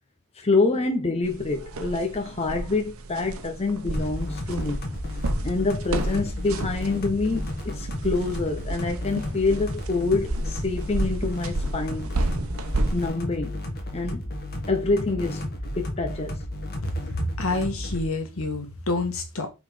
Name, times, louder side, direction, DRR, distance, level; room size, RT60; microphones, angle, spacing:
voice 1, 0.3-4.8 5.4-12.1 12.9-13.6 13.9-14.3 14.7-16.4, left 3 dB, 30° left, 0.8 m, -26 dB
sound 1, 1.2-13.1, right 2 dB, 75° right, 1.0 m, -31 dB
sound 2, 3.9-18.1, left 1 dB, 45° left, 1.5 m, -33 dB
voice 2, 16.8-19.5, left 2 dB, 70° left, 1.5 m, -28 dB
5.5 x 3.9 x 4.9 m
head